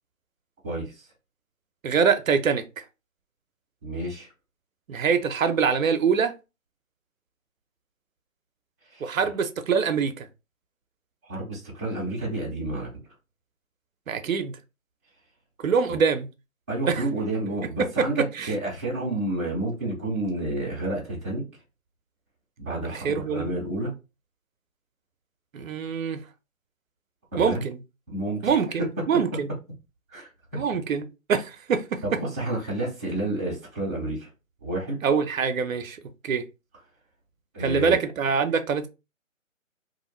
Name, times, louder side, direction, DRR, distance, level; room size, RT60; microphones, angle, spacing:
voice 1, 0.6-1.0 3.8-4.3 8.9-9.1 11.3-12.9 16.7-21.4 22.6-23.9 27.3-27.6 28.1-28.6 30.1-30.6 32.0-34.3 34.6-35.0 37.5-38.0, right 2 dB, 10° right, 0.5 m, -30 dB
voice 2, 1.8-2.8 4.9-6.3 9.0-10.3 14.1-14.5 15.6-16.3 16.9-17.0 18.0-18.1 18.3-18.5 22.9-23.5 25.5-26.2 27.4-27.8 28.4-29.5 30.5-32.0 35.0-36.0 36.2-36.4 37.6-38.9, right 6 dB, 75° right, 0.6 m, -24 dB
2.5 x 2.2 x 3.0 m
figure-of-eight pair, 150°, 41 cm